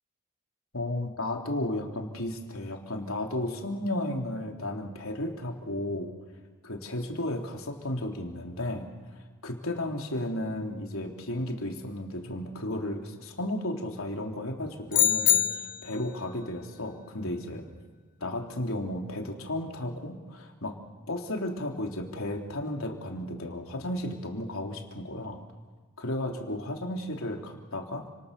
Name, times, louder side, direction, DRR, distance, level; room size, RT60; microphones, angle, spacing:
voice 1, 0.7-6.1 6.6-8.9 9.4-15.5 15.8-17.6 18.2-20.8 21.1-25.4 26.0-28.1, left 1 dB, 75° left, 2 dB, 3.6 m, -33 dB
sound 1, 14.9-16.0, left 11 dB, 40° left, 0.7 m, -24 dB
30.0 x 27.0 x 6.9 m, 1.4 s
head